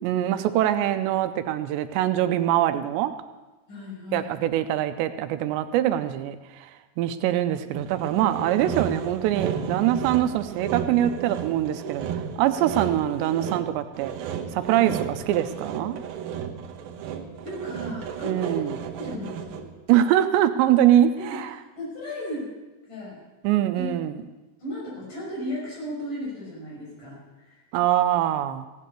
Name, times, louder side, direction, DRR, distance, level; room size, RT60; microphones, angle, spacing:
voice 1, 0.0-3.1 4.1-6.7 7.0-14.1 14.5-16.0 18.2-18.8 19.9-21.5 23.4-24.2 27.7-28.7, right 12 dB, 85° right, 10 dB, 2.9 m, -23 dB
voice 2, 3.7-4.3 14.8-14.9 17.4-18.6 19.0-19.7 21.2-21.5 21.8-22.5 22.9-23.2 23.7-23.9 24.6-27.6, left 1 dB, 45° left, -4 dB, 7.1 m, -35 dB
Sawing, 7.8-19.8, right 8 dB, 70° right, 2.6 m, -33 dB
15.5 x 10.5 x 6.8 m, 1.1 s
omnidirectional pair, 5.0 m